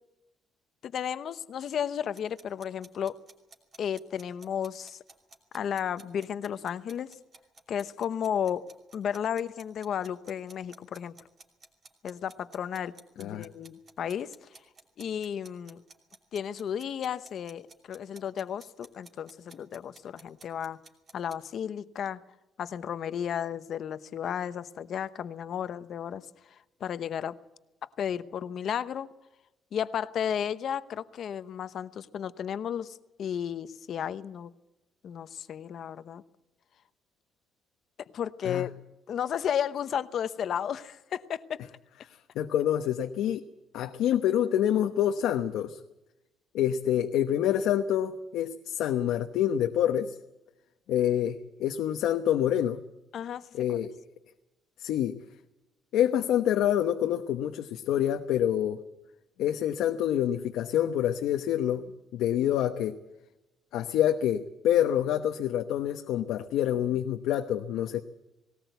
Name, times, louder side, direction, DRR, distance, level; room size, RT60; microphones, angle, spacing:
voice 1, 0.8-3.2 3.8-5.0 5.5-7.1 7.7-8.7 8.9-11.1 12.0-14.3 15.0-15.8 16.3-20.8 21.1-22.2 22.6-26.3 26.5-27.4 28.0-29.1 29.7-34.5 35.0-36.2 38.0-38.7 39.1-41.6 53.1-53.8, left 8 dB, 45° left, 13 dB, 0.9 m, -33 dB
sound 1, 2.1-21.3, right 4 dB, 30° right, 2.8 m, -53 dB
voice 2, 42.3-43.4 43.7-45.8 46.5-50.1 50.9-52.8 53.5-53.9 54.8-55.1 55.9-58.8 59.4-61.8 62.1-63.0 63.7-68.0, left 10 dB, 85° left, 5 dB, 1.0 m, -27 dB
19.5 x 18.5 x 8.1 m, 0.96 s
cardioid pair, 170°, 0 cm